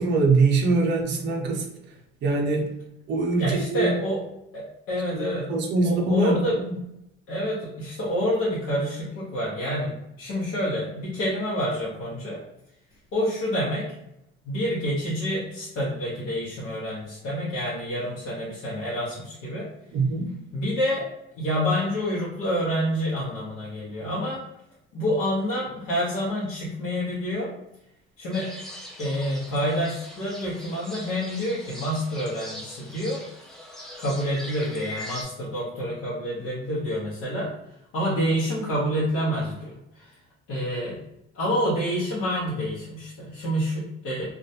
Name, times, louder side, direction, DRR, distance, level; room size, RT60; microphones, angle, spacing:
voice 1, 0.0-1.6 2.2-2.7 3.1-3.9 5.1-6.8 19.9-20.3, right 3 dB, 55° right, 0 dB, 0.5 m, -23 dB
voice 2, 3.4-4.2 4.5-5.5 5.8-6.6 7.3-12.4 13.1-13.9 14.4-19.7 20.5-21.1 21.4-24.4 24.9-27.5 28.2-28.5 29.0-33.2 34.0-37.5 37.9-40.1 40.5-41.0 41.3-44.3, equal, 85° left, -7 dB, 0.8 m, -28 dB
sound 1, 28.3-35.2, equal, ahead, 0.4 m, -41 dB
2.3 x 2.1 x 2.7 m, 0.85 s
cardioid pair, 155°, 21 cm